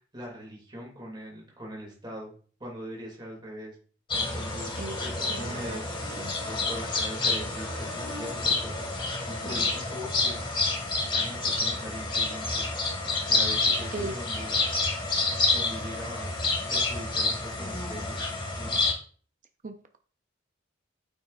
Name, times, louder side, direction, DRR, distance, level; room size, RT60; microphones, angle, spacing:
voice 1, 0.0-2.3 2.6-3.8 4.2-4.7 5.0-5.9 6.5-8.9 9.3-10.7 11.1-12.7 13.3-14.6 15.5-16.3 16.7-18.2 18.6-18.8, equal, 25° right, -2 dB, 2.5 m, -41 dB
sound 1, 4.1-18.9, left 3 dB, 25° left, 1.9 m, -28 dB
voice 2, 5.3-5.8 6.2-6.3 13.9-14.2 19.6-20.0, right 3 dB, 40° right, 6 dB, 0.6 m, -37 dB
9.2 x 5.4 x 2.4 m, 0.42 s
head